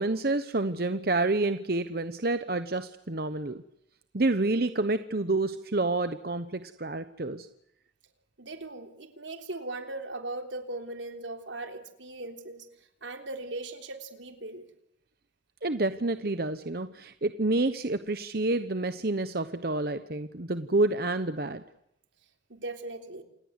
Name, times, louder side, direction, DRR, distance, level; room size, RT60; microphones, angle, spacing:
voice 1, 0.0-3.6 4.1-7.5 15.6-21.6, right 2 dB, 55° right, 11 dB, 1.0 m, -28 dB
voice 2, 8.4-12.7 13.0-14.7 22.5-23.2, right 2 dB, 85° right, 6 dB, 3.5 m, -39 dB
28.0 x 19.0 x 8.2 m, 0.75 s
head